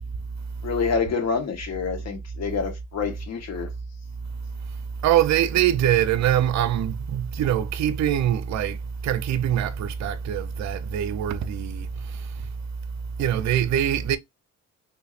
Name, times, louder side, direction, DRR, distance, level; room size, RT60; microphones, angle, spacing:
voice 1, 0.6-3.7, left 5 dB, 60° left, 1.1 m, -27 dB
voice 2, 5.0-11.9 13.2-14.2, right 10 dB, 65° right, 0.5 m, -23 dB
3.5 x 3.0 x 2.4 m
cardioid pair, 90°, 30 cm